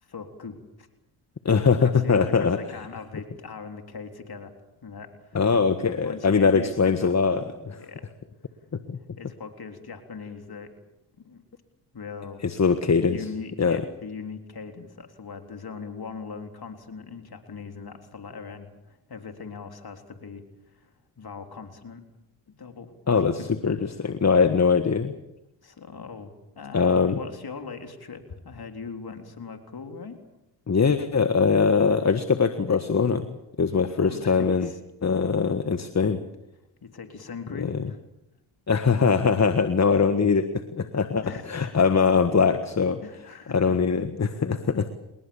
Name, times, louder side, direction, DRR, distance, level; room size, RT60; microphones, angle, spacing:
voice 1, 0.0-0.9 1.8-4.5 4.8-5.4 6.0-7.3 7.8-8.1 9.2-10.7 11.2-11.4 11.9-12.4 13.0-22.0 22.6-22.9 25.6-30.2 34.0-34.8 36.8-38.0 41.2-41.8 43.0-43.7, left 5 dB, 50° left, 5 dB, 3.8 m, -40 dB
voice 2, 1.4-2.6 5.3-7.8 8.7-9.0 12.4-13.2 13.6-13.8 23.1-25.1 26.7-27.2 30.7-33.3 33.6-34.7 35.0-36.2 37.7-37.8 38.7-43.0 43.5-44.9, left 5 dB, 35° left, 10 dB, 1.6 m, -22 dB
29.5 x 20.5 x 7.2 m, 0.91 s
supercardioid pair, 50°, 49 cm